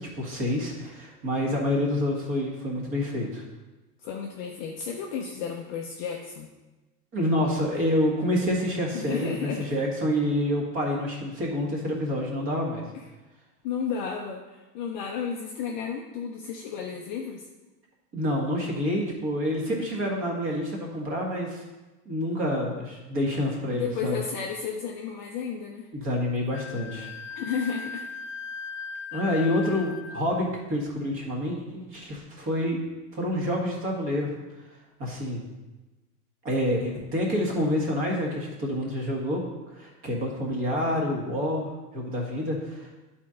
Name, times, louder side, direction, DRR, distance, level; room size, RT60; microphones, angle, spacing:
voice 1, 0.0-3.4 7.1-12.8 18.1-21.6 22.0-24.2 25.9-27.1 29.1-32.8 33.1-34.3 35.0-35.4 36.4-39.4 39.7-42.9, left 1 dB, 25° right, -1 dB, 1.5 m, -28 dB
voice 2, 4.0-6.5 8.9-9.7 12.9-13.0 13.6-17.5 23.7-25.9 27.4-28.0, left 6 dB, 35° left, 0 dB, 0.4 m, -33 dB
Wind instrument woodwind instrument, 26.5-30.2, left 6 dB, 55° left, 0.8 m, -38 dB
10.5 x 4.4 x 3.7 m, 1.1 s
supercardioid pair, 165°, 46 cm